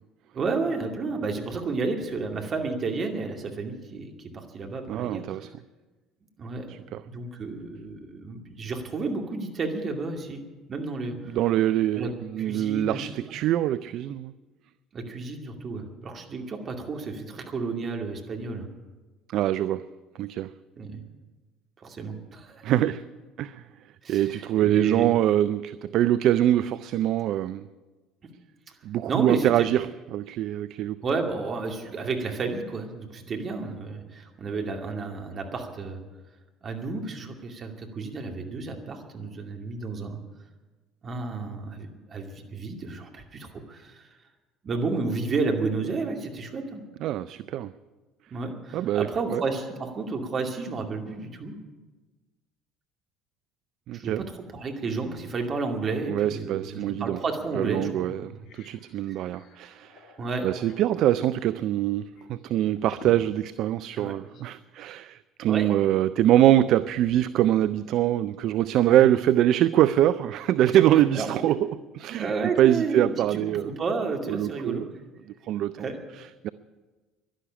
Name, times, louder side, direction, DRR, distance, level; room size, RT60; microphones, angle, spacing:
voice 1, 0.3-5.2 6.4-6.7 7.0-10.4 10.7-11.4 11.9-12.1 12.4-13.3 14.9-18.7 20.8-21.0 21.8-22.7 24.0-25.1 29.1-29.7 31.0-36.0 36.6-40.2 41.0-44.1 44.6-46.8 48.3-51.6 53.9-58.3 59.1-59.2 60.2-60.5 64.0-64.1 65.5-65.7 68.9-69.0 70.7-70.8 71.1-71.6 72.1-74.8 75.8-76.0, right 4 dB, 40° right, 2.4 m, -31 dB
voice 2, 4.9-5.5 6.7-7.0 11.3-14.3 19.3-19.9 20.2-20.5 22.6-23.0 23.4-23.6 24.1-27.7 28.8-31.0 47.0-47.7 48.7-49.4 53.9-54.3 56.1-57.2 57.5-60.0 60.4-71.6 72.0-72.3 72.6-73.7 74.3-74.8 75.4-75.7 76.4-76.5, right 12 dB, 55° right, 0.4 m, -24 dB
sound 1, 57.2-57.4 57.8-57.9 58.2-64.6, left 3 dB, 55° left, 1.6 m, -50 dB
11.5 x 11.5 x 9.9 m
hypercardioid pair, 65°, 0 cm